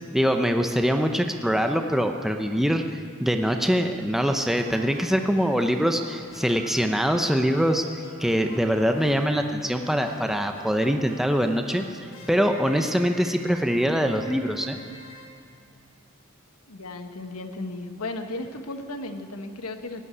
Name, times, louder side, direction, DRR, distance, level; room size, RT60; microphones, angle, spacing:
voice 1, 0.1-11.8 12.3-14.8, equal, ahead, 5 dB, 0.7 m, -23 dB
sound 1, 4.2-16.1, left 1 dB, 60° left, 4.0 m, -46 dB
voice 2, 16.7-20.0, left 2 dB, 85° left, 6 dB, 1.3 m, -35 dB
17.0 x 8.3 x 9.8 m, 2.2 s
head